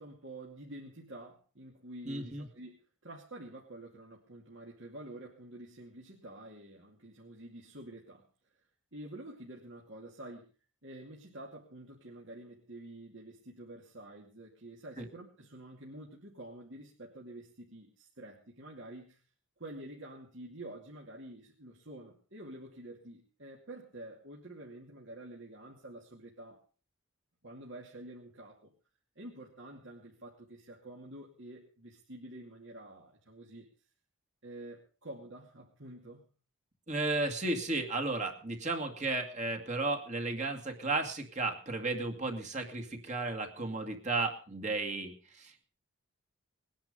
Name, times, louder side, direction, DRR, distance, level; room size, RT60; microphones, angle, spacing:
voice 1, 0.0-2.7 3.0-8.3 8.5-8.6 8.9-10.5 10.8-19.2 19.6-26.6 27.4-28.7 29.2-33.7 34.4-36.2, right 1 dB, 55° right, -2 dB, 2.5 m, -48 dB
voice 2, 2.1-2.4 15.0-15.1 36.9-45.6, right 2 dB, 35° right, 4 dB, 2.1 m, -34 dB
20.5 x 10.5 x 5.4 m, 0.39 s
head